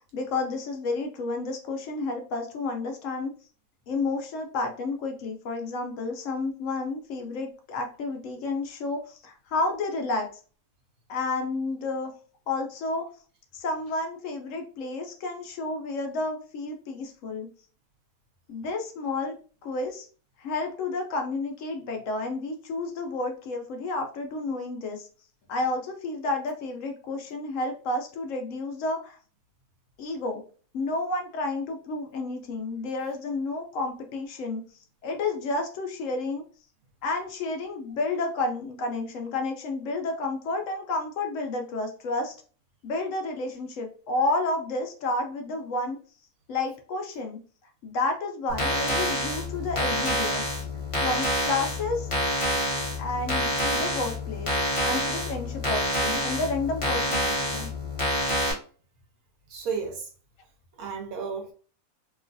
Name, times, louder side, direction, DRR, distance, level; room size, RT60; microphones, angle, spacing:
voice 1, 0.1-3.3 3.9-10.3 11.1-12.1 12.5-13.1 13.5-17.5 18.5-19.3 19.6-20.1 20.4-25.1 25.5-29.2 30.0-30.4 30.7-34.6 35.0-36.4 37.0-42.3 42.8-46.0 46.5-47.4 47.8-50.4 51.0-52.1 53.0-57.7, left 3 dB, 70° left, 0.9 m, -31 dB
sound 1, 48.5-58.5, equal, 25° left, 0.8 m, -27 dB
voice 2, 59.5-60.1 60.8-61.5, right 5 dB, 80° right, 1.3 m, -32 dB
3.0 x 2.3 x 2.5 m
omnidirectional pair, 1.5 m